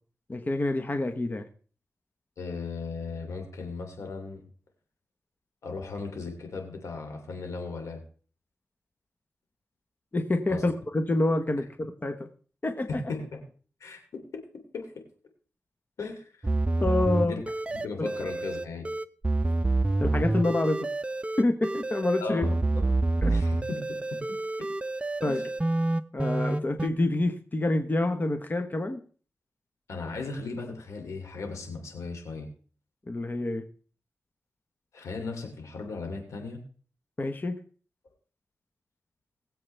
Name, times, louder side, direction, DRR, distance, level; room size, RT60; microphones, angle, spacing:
voice 1, 0.3-1.4 10.1-12.3 12.6-13.0 16.8-17.4 18.0-18.1 20.0-20.8 21.4-22.5 23.2-23.3 25.2-25.4 26.1-29.0 33.1-33.6 37.2-37.6, left 2 dB, 35° left, 7 dB, 1.2 m, -27 dB
voice 2, 2.4-4.4 5.6-8.0 10.5-10.6 12.9-13.4 13.8-14.9 16.0-16.5 17.1-17.4 17.8-18.9 22.2-22.9 23.2-24.4 25.2-25.4 29.9-32.5 34.9-36.6, left 3 dB, 90° left, 4 dB, 2.8 m, -37 dB
sound 1, 16.4-26.9, right 2 dB, 25° right, 0.6 m, -28 dB
20.5 x 7.7 x 3.4 m, 0.41 s
cardioid pair, 60°, 5 cm